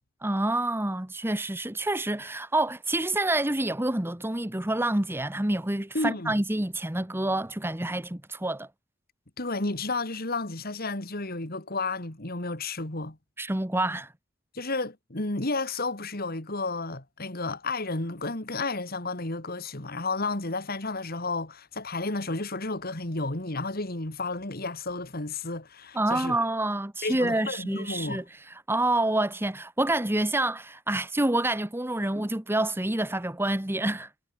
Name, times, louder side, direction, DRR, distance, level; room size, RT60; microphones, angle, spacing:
voice 1, 0.2-8.7 13.4-14.1 25.9-28.2 28.7-34.1, right 1 dB, 10° right, 1.1 m, -27 dB
voice 2, 5.9-6.4 9.4-13.2 14.5-26.4 27.0-28.2, left 3 dB, 45° left, 2.7 m, -32 dB
head